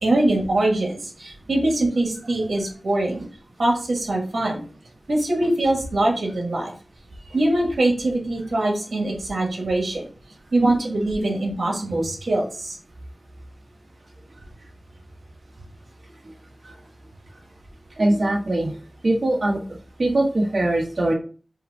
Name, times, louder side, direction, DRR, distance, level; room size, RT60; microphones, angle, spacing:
voice 1, 0.0-3.2 3.6-4.6 5.1-6.7 7.3-10.0 10.5-12.8, right 1 dB, 80° right, 0 dB, 1.5 m, -23 dB
voice 2, 18.0-18.8 19.0-19.6 20.0-21.1, right 1 dB, 55° right, -2 dB, 1.3 m, -21 dB
5.5 x 2.7 x 3.4 m, 0.40 s
wide cardioid pair, 60°, 0 cm